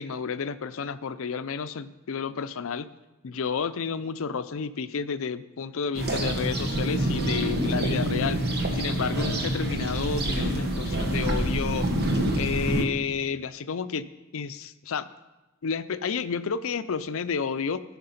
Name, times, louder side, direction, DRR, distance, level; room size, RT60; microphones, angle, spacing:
voice 1, 0.0-2.9 3.2-8.4 8.7-11.9 12.4-15.1 15.6-17.8, left 5 dB, 70° left, 13 dB, 0.5 m, -31 dB
sound 1, 5.9-12.8, right 1 dB, 50° right, 1.4 m, -27 dB
15.5 x 5.8 x 5.7 m, 1.1 s
head